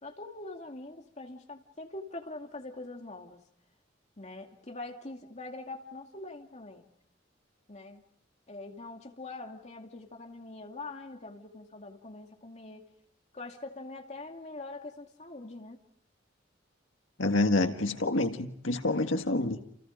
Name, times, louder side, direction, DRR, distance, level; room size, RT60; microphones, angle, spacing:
voice 1, 0.0-3.4 4.2-6.9 7.7-8.0 8.5-12.9 13.3-15.8 19.5-19.6, left 2 dB, 35° left, 2 dB, 2.5 m, -43 dB
voice 2, 17.2-19.6, left 2 dB, 80° left, 6 dB, 1.8 m, -27 dB
29.5 x 29.0 x 5.2 m, 0.73 s
head